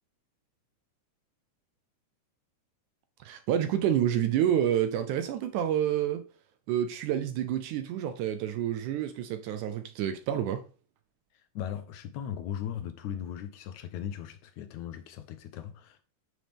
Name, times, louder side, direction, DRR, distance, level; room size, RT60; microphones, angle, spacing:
voice 1, 3.2-6.2 6.7-10.6, right 10 dB, 80° right, 2.0 m, -28 dB
voice 2, 11.3-16.0, left 9 dB, 75° left, 2.0 m, -38 dB
9.4 x 6.2 x 3.4 m
omnidirectional pair, 3.7 m